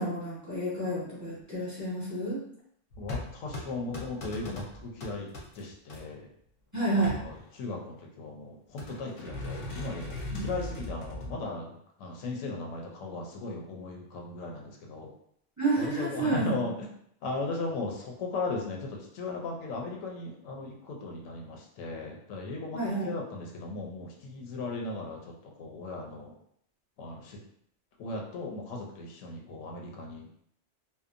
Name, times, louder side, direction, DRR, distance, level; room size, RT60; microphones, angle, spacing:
voice 1, 0.0-2.4 6.7-7.1 10.3-10.4 15.6-16.5 22.7-23.1, right 2 dB, 15° right, -9 dB, 0.8 m, -30 dB
sound 1, 2.9-6.0 6.8-7.9 8.8-11.4, left 1 dB, 55° left, 0.7 m, -39 dB
voice 2, 3.0-5.3 5.5-6.3 6.9-15.1 15.8-16.9 17.2-26.3 27.0-27.4 28.0-30.3, left 3 dB, 85° left, 0 dB, 1.0 m, -37 dB
2.8 x 2.0 x 2.4 m, 0.69 s
omnidirectional pair, 1.3 m